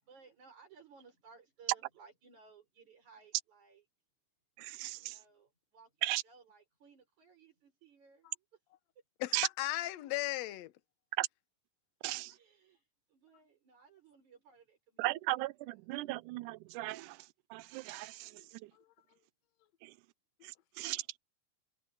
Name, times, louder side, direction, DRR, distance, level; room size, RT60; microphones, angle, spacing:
voice 1, 0.0-3.8 5.0-5.9 6.2-8.5 12.3-12.8 13.1-15.1 15.9-16.1, right 5 dB, 60° right, 7.1 m, -60 dB
voice 2, 4.6-5.2 6.0-6.2 9.3-9.5 11.2-11.3 12.0-12.3 15.0-17.2 17.5-18.3 18.6-18.7 19.8-19.9 20.4-21.2, right 19 dB, 80° right, 1.9 m, -36 dB
voice 3, 9.2-10.7, left 16 dB, 70° left, 1.9 m, -36 dB
omnidirectional pair, 3.8 m